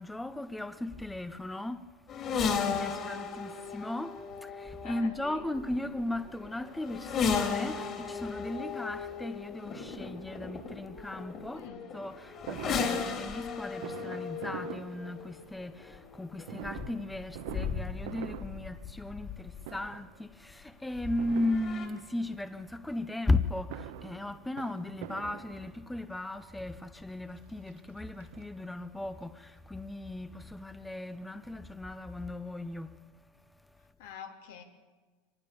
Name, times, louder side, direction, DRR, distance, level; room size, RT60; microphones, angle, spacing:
voice 1, 0.0-1.9 2.5-11.7 11.9-33.0, left 2 dB, 5° left, 0.7 m, -36 dB
sound 1, 2.1-19.9 20.9-21.9, left 6 dB, 35° left, 3.5 m, -36 dB
voice 2, 4.8-5.4 11.5-11.8 34.0-34.6, left 8 dB, 75° left, 3.4 m, -46 dB
Fireworks, 12.5-15.7 16.4-19.4 19.6-20.2 21.2-22.3 23.4-26.1 26.9-27.0 27.2-27.3 27.7-28.9 29.2-29.3 29.5-29.6, right 13 dB, 70° right, 1.0 m, -45 dB
24.5 x 19.0 x 7.1 m
supercardioid pair, 140°, 0 cm